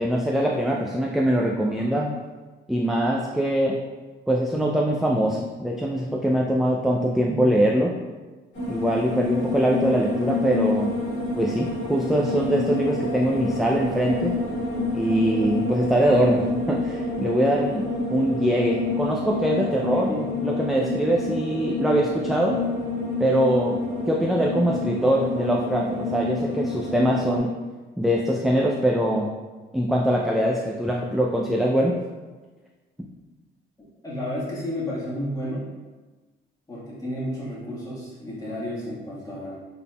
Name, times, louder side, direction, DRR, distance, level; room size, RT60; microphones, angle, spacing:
voice 1, 0.0-2.2 2.7-3.8 4.3-7.9 8.7-10.9 11.4-14.4 14.9-17.8 18.1-20.1 20.4-22.6 23.2-23.8 24.1-27.5 28.0-29.3 29.7-32.0, right 1 dB, ahead, -1 dB, 0.3 m, -23 dB
sound 1, 8.5-27.4, left 2 dB, 70° left, 1.4 m, -28 dB
voice 2, 34.0-35.7 36.7-39.6, left 1 dB, 20° left, -7 dB, 1.4 m, -31 dB
4.0 x 3.5 x 2.2 m, 1.3 s
cardioid pair, 90°, 20 cm